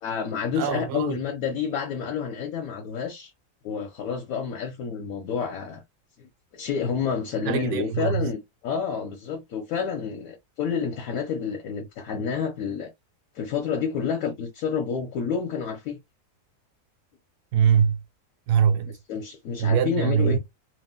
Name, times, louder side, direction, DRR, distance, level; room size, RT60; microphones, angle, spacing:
voice 1, 0.0-3.3 3.6-5.8 6.2-12.9 13.3-16.0 19.1-20.4, left 6 dB, 70° left, 1.0 m, -29 dB
voice 2, 0.5-1.2 7.4-8.3 17.5-18.0 18.5-19.0 19.6-20.4, right 8 dB, 70° right, 0.8 m, -23 dB
2.6 x 2.1 x 3.4 m
omnidirectional pair, 1.6 m